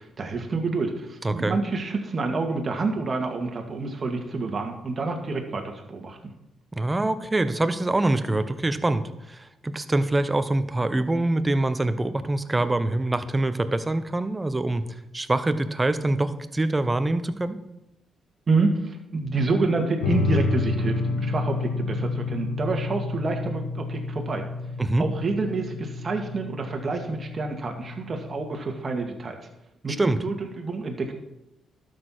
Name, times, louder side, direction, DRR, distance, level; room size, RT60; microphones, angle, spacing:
voice 1, 0.0-6.2 18.5-24.4 25.0-29.4 29.8-29.9 30.2-31.1, right 3 dB, 45° right, 2 dB, 2.0 m, -28 dB
voice 2, 1.2-1.6 6.7-17.6 24.8-25.1 29.9-30.2, right 2 dB, 20° right, 11 dB, 0.9 m, -25 dB
sound 1, 20.0-29.0, left 3 dB, 90° left, 1.4 m, -30 dB
12.0 x 6.7 x 4.5 m, 0.90 s
supercardioid pair, 60°, 0 cm